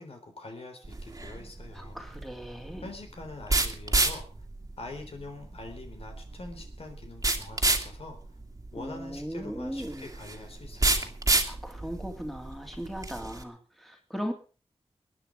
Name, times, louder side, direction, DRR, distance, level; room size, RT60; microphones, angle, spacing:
voice 1, 0.0-2.0 2.8-4.2 4.8-8.2 8.7-11.2, left 2 dB, 65° left, 4 dB, 3.7 m, -44 dB
sound 1, 0.8-13.4, right 2 dB, 30° right, 2.1 m, -30 dB
voice 2, 1.7-2.9 8.7-10.1 11.4-14.3, equal, ahead, 3 dB, 2.8 m, -38 dB
21.5 x 9.5 x 5.2 m, 0.38 s
wide cardioid pair, 90°, 11 cm